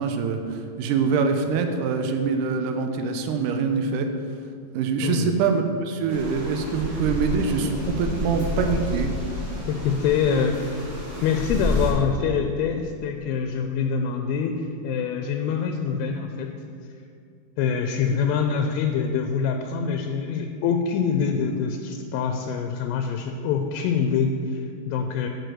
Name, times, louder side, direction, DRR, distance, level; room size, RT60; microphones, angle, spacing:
voice 1, 0.0-4.1 4.7-9.1 10.3-10.4 18.1-18.2, right 5 dB, 90° right, 5 dB, 1.9 m, -24 dB
voice 2, 5.0-5.4 9.6-10.9 11.2-16.5 17.6-25.3, left 6 dB, 80° left, 5 dB, 2.3 m, -25 dB
sound 1, 6.1-11.9, left 2 dB, 65° right, 3.9 m, -30 dB
9.2 x 4.7 x 6.3 m, 2.4 s
omnidirectional pair, 4.4 m